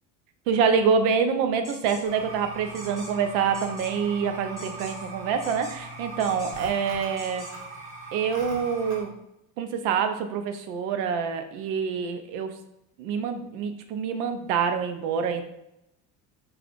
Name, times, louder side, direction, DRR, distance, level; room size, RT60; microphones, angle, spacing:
voice 1, 0.5-7.5 8.1-9.1 9.6-12.5 13.0-15.5, right 6 dB, 75° right, 7 dB, 0.6 m, -26 dB
sound 1, 1.6-2.0 2.7-3.1 3.5-3.9 4.6-5.1 5.4-5.8 6.2-6.7 7.2-7.5, equal, 10° right, 0.8 m, -43 dB
sound 2, 2.0-9.0, right 2 dB, 45° right, 1.1 m, -40 dB
4.9 x 2.4 x 2.4 m, 0.84 s
cardioid pair, 160°, 36 cm